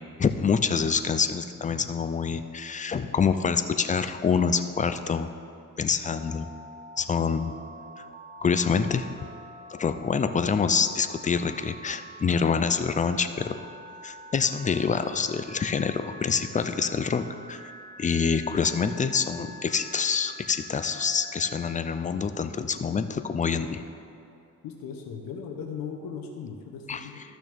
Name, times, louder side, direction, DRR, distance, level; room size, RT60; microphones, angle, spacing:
voice 1, 0.2-5.3 5.8-6.5 7.0-7.5 8.0-8.1 8.4-9.1 9.8-13.6 14.0-17.7 18.0-23.8 26.9-27.1, left 6 dB, 25° left, 10 dB, 0.4 m, -26 dB
Telephone, 6.0-21.7, equal, 25° right, 0.6 m, -46 dB
voice 2, 24.6-27.2, left 6 dB, 75° left, 1 dB, 1.0 m, -38 dB
14.0 x 6.1 x 3.5 m, 2.6 s
cardioid pair, 110°, 34 cm